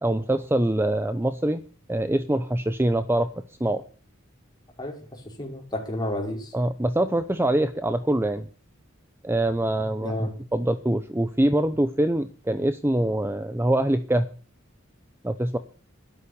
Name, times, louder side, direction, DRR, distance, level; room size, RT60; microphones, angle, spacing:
voice 1, 0.0-1.6 1.9-3.3 3.6-3.8 6.5-8.5 9.2-14.3 15.2-15.6, right 1 dB, 10° right, 10 dB, 0.8 m, -24 dB
voice 2, 5.4-6.5 10.0-10.3, left 1 dB, 20° left, 0 dB, 5.2 m, -30 dB
13.0 x 11.5 x 6.9 m, 0.38 s
head